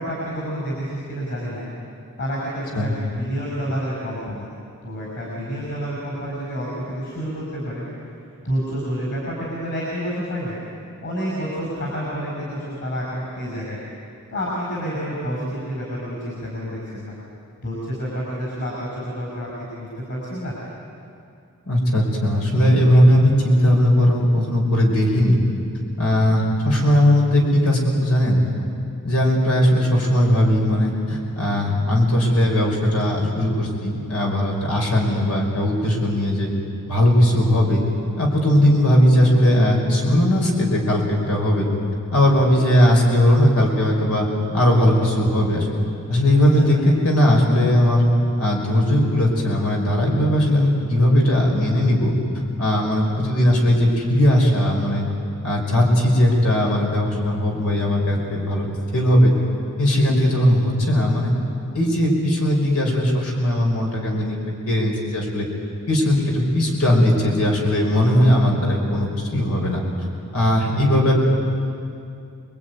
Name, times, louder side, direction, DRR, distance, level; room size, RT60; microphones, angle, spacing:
voice 1, 0.0-1.7 2.2-4.5 4.8-7.8 8.4-10.6 11.0-13.8 14.3-17.2 17.6-20.5 46.5-46.7, equal, 55° left, -4 dB, 6.8 m, -29 dB
voice 2, 21.7-25.4 26.0-28.4 29.0-36.5 36.9-37.8 38.2-41.7 42.1-44.3 44.5-45.7 46.1-48.0 48.4-52.1 52.6-55.1 55.4-58.7 58.9-59.3 59.8-61.3 61.7-64.4 64.7-65.5 65.9-69.8 70.3-71.1, left 1 dB, 90° left, 0 dB, 5.4 m, -18 dB
28.0 x 21.5 x 9.5 m, 2.5 s
head